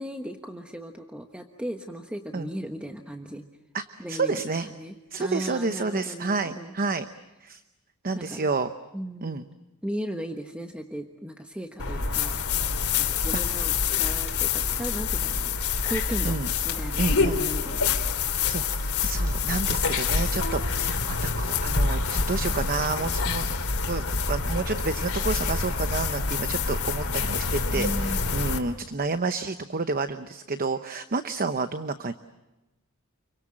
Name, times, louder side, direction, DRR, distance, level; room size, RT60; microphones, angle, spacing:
voice 1, 0.0-3.4 4.0-4.4 4.6-6.7 8.1-8.4 8.9-9.4 9.8-12.4 12.9-15.6 15.8-16.4 16.6-18.1 27.7-28.3, equal, 5° right, 4 dB, 1.2 m, -36 dB
voice 2, 3.7-4.7 5.1-7.1 7.4-7.6 8.0-8.7 9.2-9.4 16.2-16.5 17.0-17.4 18.5-23.5 23.9-32.1, right 3 dB, 40° right, 10 dB, 0.9 m, -30 dB
sound 1, 11.8-28.6, left 4 dB, 75° left, 2.9 m, -26 dB
29.5 x 23.5 x 7.7 m, 1.0 s
head